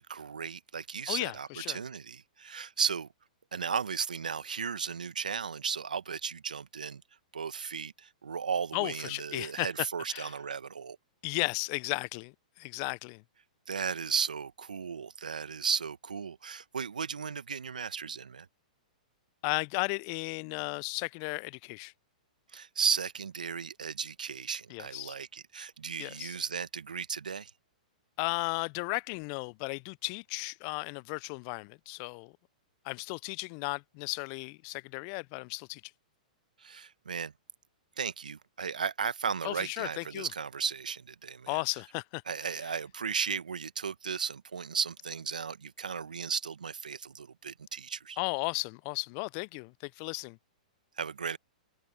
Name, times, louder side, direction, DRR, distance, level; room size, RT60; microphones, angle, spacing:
voice 1, 0.0-3.1 3.5-7.0 7.3-11.0 13.7-18.5 22.5-27.5 36.6-37.3 38.0-41.6 42.3-48.2 51.0-51.4, right 6 dB, 80° right, 1.1 m, -35 dB
voice 2, 1.1-1.8 8.7-10.3 11.2-13.2 19.4-21.9 24.7-25.2 26.0-26.3 28.2-32.3 32.8-35.8 39.4-40.3 41.5-42.2 48.2-50.4, left 37 dB, 40° left, 0.5 m, -35 dB
open air
figure-of-eight pair, 110°, 4 cm